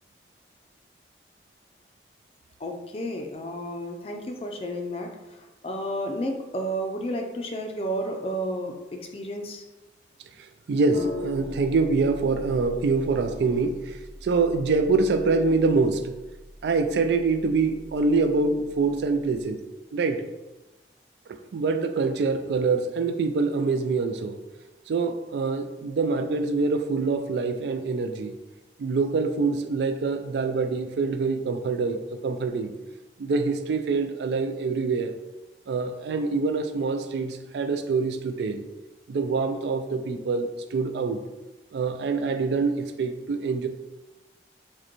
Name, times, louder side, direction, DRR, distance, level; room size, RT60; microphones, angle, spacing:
voice 1, 2.6-9.6, equal, 35° left, 3 dB, 0.4 m, -32 dB
voice 2, 10.7-13.9 14.2-16.1 16.6-19.6 19.9-20.2 21.3-24.4 24.9-28.3 28.8-32.7 33.2-35.2 35.7-38.6 39.1-41.2 41.7-43.7, right 4 dB, 75° right, 8 dB, 0.3 m, -25 dB
sound 1, 10.9-19.5, left 1 dB, 30° right, 0.8 m, -41 dB
4.9 x 2.2 x 2.9 m, 1.1 s
head